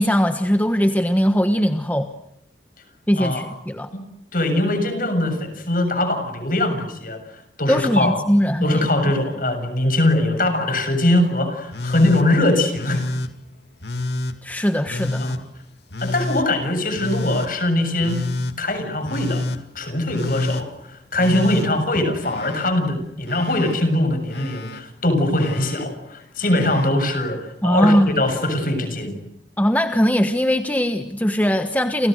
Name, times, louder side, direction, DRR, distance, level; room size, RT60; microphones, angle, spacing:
voice 1, 0.0-2.1 3.1-3.9 7.7-9.2 14.4-15.3 27.6-28.2 29.6-32.1, equal, 10° left, 7 dB, 1.3 m, -20 dB
voice 2, 4.3-7.2 7.6-8.2 8.6-13.1 15.2-15.4 16.0-18.2 18.6-19.4 19.8-29.2, left 1 dB, 50° left, 8 dB, 7.0 m, -21 dB
Telephone, 11.7-12.3 12.8-13.3 13.8-14.4 14.9-15.4 15.9-16.5 17.0-17.5 18.0-18.6 19.0-19.6 20.1-20.7 21.1-22.7 23.0-23.8 24.3-24.8 25.4-25.9 26.4-26.9 28.1-28.2, left 2 dB, 70° left, 2.5 m, -28 dB
30.0 x 29.0 x 6.6 m, 0.76 s
head